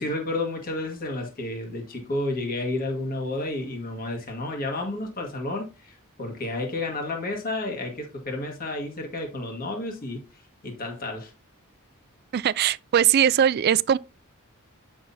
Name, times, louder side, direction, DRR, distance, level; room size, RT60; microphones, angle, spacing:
voice 1, 0.0-11.3, left 2 dB, 40° left, 1.6 m, -31 dB
voice 2, 12.3-14.0, right 9 dB, 45° right, 0.3 m, -20 dB
8.9 x 6.1 x 2.7 m
head